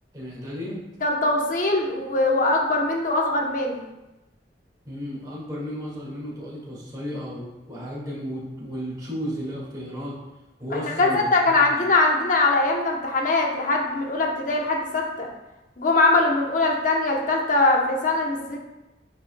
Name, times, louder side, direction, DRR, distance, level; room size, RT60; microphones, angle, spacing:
voice 1, 0.1-0.8 4.9-10.2 10.6-11.6, equal, 25° right, -6 dB, 2.0 m, -33 dB
voice 2, 1.0-3.8 10.7-15.3 15.8-18.6, left 2 dB, 50° left, 1 dB, 0.9 m, -22 dB
9.2 x 5.1 x 2.3 m, 1.0 s
head